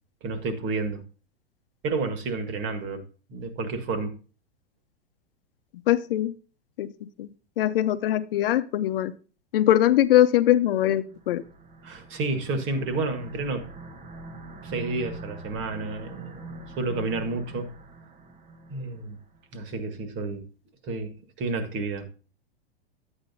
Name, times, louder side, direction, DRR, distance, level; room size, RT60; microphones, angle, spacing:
voice 1, 0.2-1.0 1.8-3.0 3.3-4.2 11.8-13.7 14.6-17.7 18.7-19.2 19.5-20.4 20.8-22.1, right 3 dB, 40° right, 1.8 m, -30 dB
voice 2, 5.7-6.3 6.8-7.3 7.6-9.1 9.5-11.4, left 13 dB, 60° left, 0.8 m, -22 dB
sound 1, 10.8-19.4, right 2 dB, 25° right, 1.1 m, -44 dB
11.0 x 8.8 x 2.8 m
hypercardioid pair, 105°, 31 cm